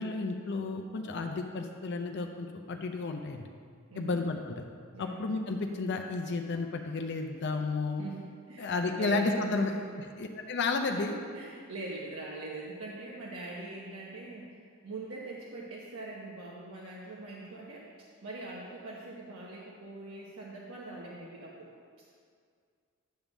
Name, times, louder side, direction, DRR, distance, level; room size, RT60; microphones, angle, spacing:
voice 1, 0.0-3.5 3.9-4.6 5.0-8.0 8.6-9.7 10.2-11.2, left 3 dB, 55° left, 4 dB, 0.5 m, -32 dB
voice 2, 3.9-4.2 4.9-5.3 8.0-9.9 11.3-17.9 18.2-21.7, right 2 dB, 75° right, -4 dB, 1.0 m, -42 dB
10.0 x 3.5 x 7.1 m, 2.1 s
head